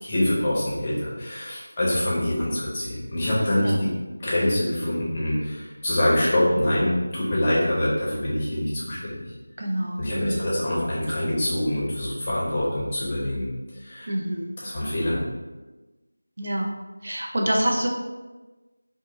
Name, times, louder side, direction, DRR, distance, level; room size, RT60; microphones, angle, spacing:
voice 1, 0.0-3.9 4.2-9.2 10.0-13.5 13.8-14.1 14.6-15.2, left 1 dB, 20° left, -7 dB, 0.7 m, -25 dB
voice 2, 9.6-10.5 14.1-14.5 16.4-16.7 17.0-17.9, right 1 dB, 50° right, 0 dB, 0.4 m, -26 dB
2.6 x 2.5 x 3.6 m, 1.2 s
figure-of-eight pair, 175°, 0 cm